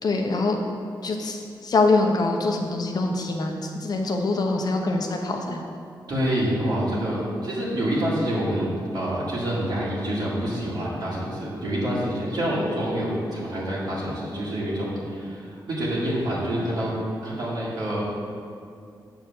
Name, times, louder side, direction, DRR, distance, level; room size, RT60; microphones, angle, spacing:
voice 1, 0.0-0.6 1.0-5.7, left 3 dB, 55° left, 3 dB, 0.9 m, -24 dB
voice 2, 6.1-16.9 17.2-18.0, equal, 60° right, -9 dB, 2.1 m, -27 dB
7.9 x 4.5 x 7.0 m, 2.4 s
wide cardioid pair, 145°, 8 cm